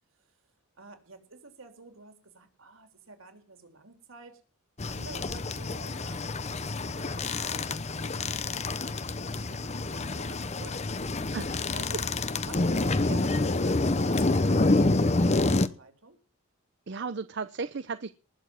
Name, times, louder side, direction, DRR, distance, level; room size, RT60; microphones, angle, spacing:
voice 1, 0.8-4.4 4.9-11.0 11.7-12.1 12.5-16.2, right 3 dB, 75° right, 6 dB, 3.5 m, -50 dB
sound 1, 4.8-15.7, left 2 dB, 30° left, 0.8 m, -27 dB
voice 2, 11.3-11.7 16.9-18.1, right 4 dB, 55° right, 12 dB, 0.6 m, -35 dB
19.5 x 7.0 x 7.4 m, 0.39 s
head